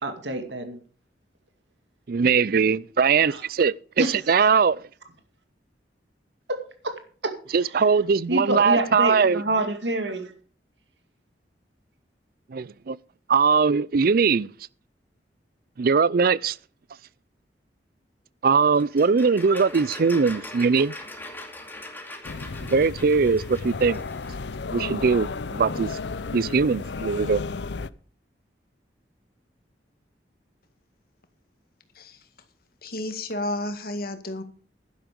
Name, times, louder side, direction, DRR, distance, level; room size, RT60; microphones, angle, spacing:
voice 1, 0.0-0.8 3.3-3.4 4.0-4.2 6.5-6.6 6.8-6.9 7.2-7.3 7.6-7.7 8.3-10.3, right 1 dB, 85° right, 2.3 m, -27 dB
voice 2, 2.1-4.8 7.5-9.4 12.5-13.0 13.3-14.5 15.8-16.6 18.4-20.9 22.7-24.0 24.7-25.9 26.3-27.4, right 5 dB, 55° right, 0.4 m, -21 dB
sound 1, 18.7-24.4, left 1 dB, 10° left, 2.5 m, -41 dB
sound 2, 22.2-27.9, left 4 dB, 75° left, 0.6 m, -33 dB
voice 3, 32.8-34.4, left 1 dB, 55° left, 1.9 m, -31 dB
11.5 x 11.0 x 5.2 m
head